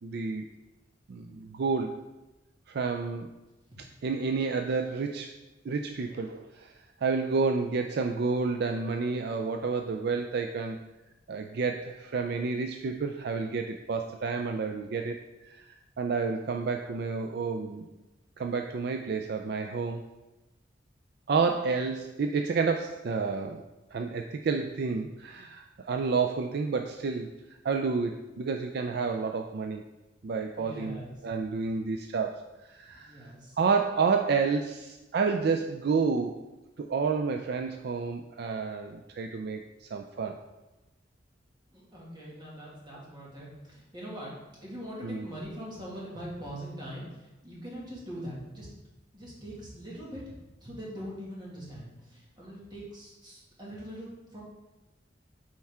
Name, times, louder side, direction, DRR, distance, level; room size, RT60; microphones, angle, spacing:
voice 1, 0.0-0.5 1.1-2.0 2.7-3.3 4.0-5.3 5.7-6.7 7.0-10.8 11.3-15.2 15.4-15.7 16.0-17.9 18.4-20.0 21.3-23.6 23.9-27.3 27.6-29.8 30.2-32.4 32.7-36.4 36.8-40.4 45.0-45.2, right 4 dB, 60° right, 5 dB, 0.4 m, -30 dB
voice 2, 21.3-21.6 30.5-31.2 31.6-31.7 32.9-33.6 41.7-44.3 44.6-48.7 49.1-50.2 50.6-54.4, equal, 25° right, -5 dB, 2.1 m, -42 dB
8.6 x 4.5 x 3.6 m, 1.0 s
head